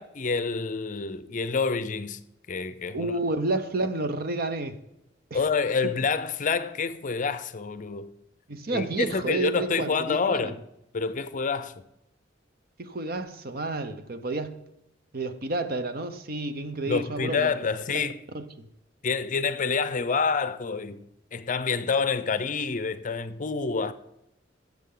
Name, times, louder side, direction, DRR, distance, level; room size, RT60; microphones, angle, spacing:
voice 1, 0.0-2.2 2.5-3.1 5.3-8.1 8.7-10.6 10.9-11.8 16.9-18.2 19.0-21.1 21.3-23.9, left 5 dB, 45° left, 0.5 m, -28 dB
voice 2, 2.9-4.8 5.3-5.4 8.5-10.6 12.8-14.6 15.1-17.5 17.9-18.0 18.3-18.7, right 2 dB, 55° right, 0.8 m, -30 dB
14.0 x 7.5 x 3.8 m
head